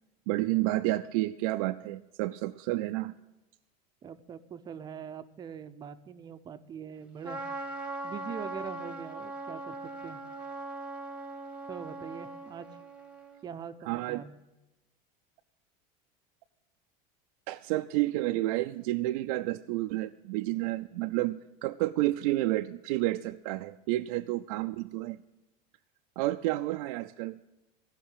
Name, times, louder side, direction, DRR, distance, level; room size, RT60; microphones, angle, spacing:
voice 1, 0.3-3.2 13.9-14.2 17.5-25.2 26.2-27.4, right 17 dB, 75° right, 8 dB, 0.5 m, -30 dB
voice 2, 4.0-7.5 8.0-9.8 10.0-10.2 11.7-12.7 13.4-14.4, right 7 dB, 20° right, 11 dB, 0.6 m, -42 dB
Trumpet, 7.2-13.4, right 2 dB, 5° right, 1.1 m, -40 dB
15.5 x 5.7 x 9.8 m, 0.97 s
cardioid pair, 155°, 19 cm